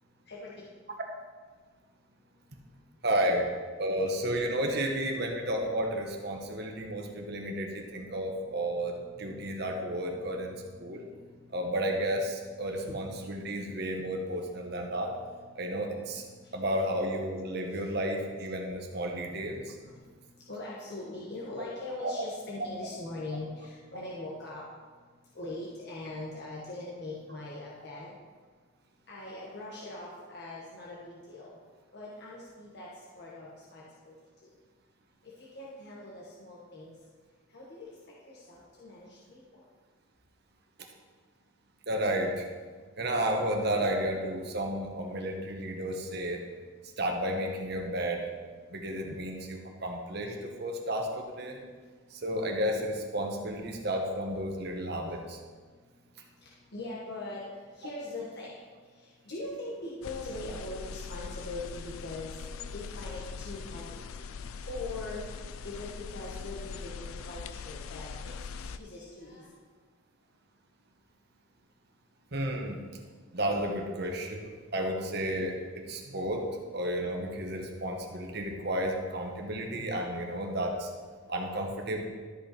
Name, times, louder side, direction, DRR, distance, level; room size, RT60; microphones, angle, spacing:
voice 1, 0.3-0.6 7.4-7.7 8.1-11.8 12.6-16.6 17.7-17.9 19.3-20.0 20.5-24.7 25.3-28.2 29.1-31.5 31.9-32.9 33.1-34.1 34.4-34.5 35.2-36.9 37.5-37.9 38.2-39.4 49.0-49.2 55.0-55.1 56.4-58.6 59.0-62.3 62.7-64.0 64.7-65.2 65.6-69.5, left 2 dB, 50° left, -5 dB, 1.3 m, -42 dB
voice 2, 3.0-3.5 3.8-8.9 9.2-10.5 10.8-11.0 11.5-15.1 15.5-16.2 16.5-19.6 22.0-22.2 41.9-42.5 43.0-46.4 47.0-48.2 48.7-51.6 52.1-55.4 72.3-72.8 73.3-75.6 75.9-76.4 76.7-80.9 81.3-82.1, right 1 dB, 50° right, 2 dB, 1.2 m, -32 dB
sound 1, 60.0-68.8, left 5 dB, 80° left, 0.4 m, -41 dB
12.5 x 5.6 x 4.3 m, 1.5 s
head